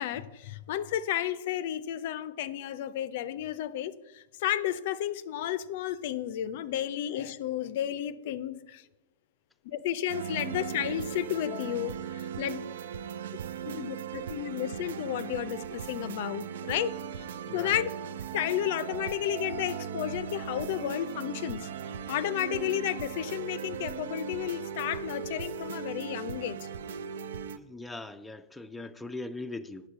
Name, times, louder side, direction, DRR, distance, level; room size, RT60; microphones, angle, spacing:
voice 1, 0.0-8.8 9.6-12.6 13.6-16.9 17.2-17.3 17.5-17.9 18.3-21.7 22.1-26.7, left 11 dB, 60° left, 0.5 m, -32 dB
sound 1, 10.1-27.6, right 8 dB, 70° right, 0.4 m, -38 dB
voice 2, 17.5-17.9 27.6-29.9, left 2 dB, 5° left, 0.4 m, -40 dB
8.6 x 6.4 x 5.5 m
hypercardioid pair, 105°, 0 cm